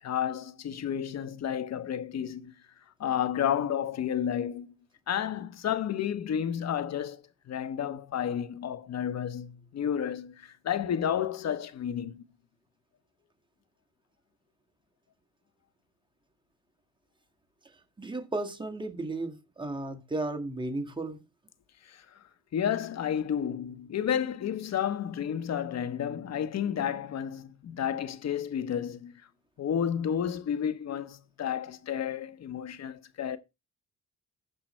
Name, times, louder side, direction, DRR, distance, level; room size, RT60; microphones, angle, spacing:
voice 1, 0.0-2.5 3.0-4.7 5.1-12.2 21.8-22.2 22.5-29.1 29.6-33.4, left 9 dB, 60° left, 1.2 m, -31 dB
voice 2, 18.0-21.2, right 2 dB, 15° right, 1.9 m, -34 dB
15.5 x 5.9 x 3.3 m
cardioid pair, 90°, 30 cm